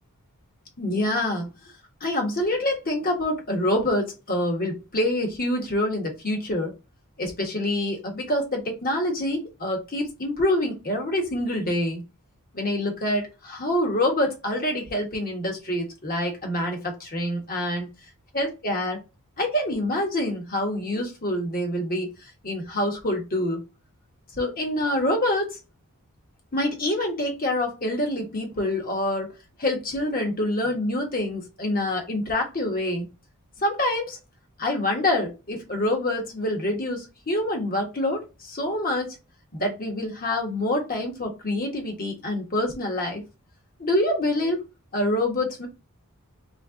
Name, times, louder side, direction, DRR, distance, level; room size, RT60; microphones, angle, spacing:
voice 1, 0.8-1.5 2.0-6.7 7.2-12.0 12.5-17.9 18.3-19.0 19.4-22.1 22.4-23.6 24.4-25.6 26.5-29.3 29.6-33.1 33.6-34.2 34.6-39.1 39.5-43.2 43.8-44.6 44.9-45.7, left 1 dB, 40° left, 1.4 m, -26 dB
3.3 x 3.2 x 3.7 m
head